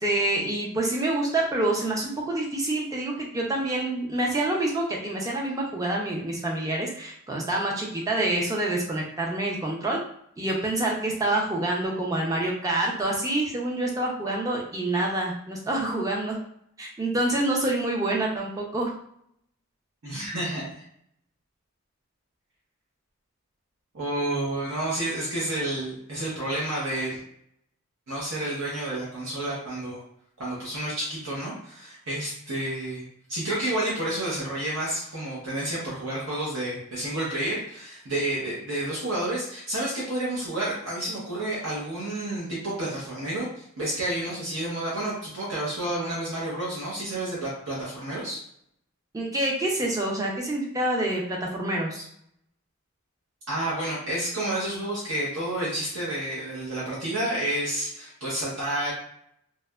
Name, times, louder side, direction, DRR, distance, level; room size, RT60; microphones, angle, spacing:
voice 1, 0.0-10.0 10.4-16.4 16.8-18.9 49.1-52.1, right 1 dB, 15° right, -2 dB, 0.4 m, -27 dB
voice 2, 20.0-20.7 23.9-27.2 28.1-30.0 30.4-48.4 53.5-58.9, right 1 dB, 65° right, -6 dB, 0.7 m, -30 dB
2.7 x 2.2 x 2.2 m, 0.70 s
head